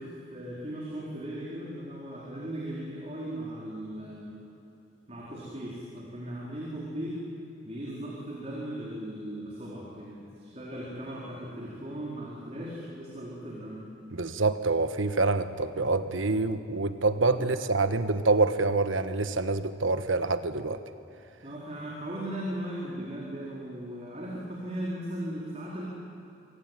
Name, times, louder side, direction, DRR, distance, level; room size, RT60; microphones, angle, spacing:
voice 1, 0.0-4.4 5.1-7.2 7.6-13.8 17.4-17.5 21.4-25.9, right 1 dB, 35° right, -4 dB, 4.3 m, -37 dB
voice 2, 14.1-20.8, right 3 dB, 85° right, 11 dB, 1.3 m, -26 dB
26.0 x 23.0 x 9.2 m, 2.9 s
head